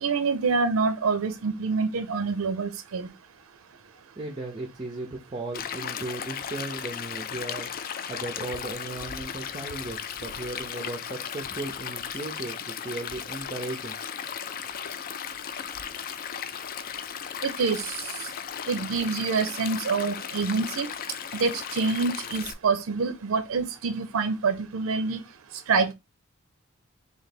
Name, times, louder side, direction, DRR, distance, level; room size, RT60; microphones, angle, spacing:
voice 1, 0.0-3.1 17.4-17.8 18.7-20.9 21.4-25.2 25.7-25.9, right 4 dB, 85° right, 0.5 m, -26 dB
voice 2, 4.2-7.7 8.1-14.0, right 2 dB, 25° right, 0.5 m, -36 dB
Stream, 5.5-22.5, left 8 dB, 45° left, 0.3 m, -36 dB
3.2 x 2.7 x 4.1 m
head